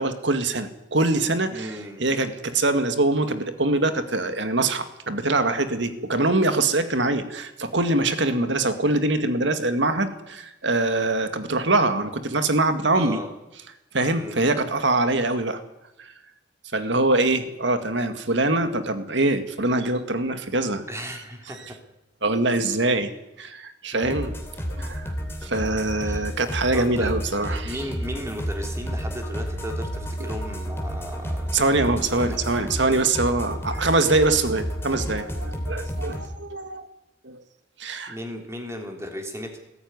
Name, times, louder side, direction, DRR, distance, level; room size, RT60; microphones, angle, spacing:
voice 1, 0.0-13.2 13.9-15.6 16.0-16.1 16.7-20.8 21.5-21.6 22.2-23.1 23.4-24.3 24.7-25.1 25.4-27.8 30.2-30.3 31.5-36.9 37.2-37.4 37.8-38.2, right 2 dB, 65° right, 9 dB, 2.0 m, -23 dB
voice 2, 1.5-2.1 12.9-13.3 14.1-14.4 20.9-21.8 23.9-24.3 26.0-26.2 26.7-27.1 27.5-32.4 38.1-39.6, equal, 15° right, 3 dB, 3.2 m, -36 dB
sound 1, 24.0-36.3, equal, 15° left, 3.0 m, -31 dB
sound 2, 26.9-32.0, right 2 dB, 35° right, 2.0 m, -37 dB
19.5 x 14.5 x 9.7 m, 0.94 s
head